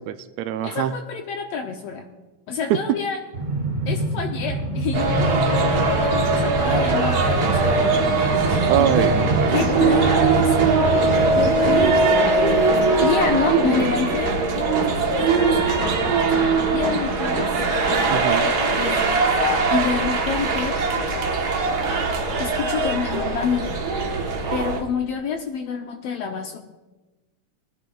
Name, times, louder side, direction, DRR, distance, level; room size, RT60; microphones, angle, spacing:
voice 1, 0.1-0.9 2.7-2.8 8.7-9.9 18.1-18.5, right 10 dB, 80° right, 10 dB, 1.5 m, -24 dB
voice 2, 0.6-2.1 2.5-3.2 3.9-9.1 9.5-10.6 11.3-12.1 13.0-14.4 15.1-17.5 18.4-19.2 19.7-20.8 22.4-23.7 24.5-26.6, left 6 dB, 75° left, 4 dB, 1.5 m, -28 dB
Train, 3.3-12.2, right 3 dB, 20° right, 2.4 m, -26 dB
sound 1, 4.9-24.8, right 3 dB, 65° right, 1.0 m, -21 dB
21.0 x 10.5 x 2.3 m, 1.2 s
omnidirectional pair, 3.5 m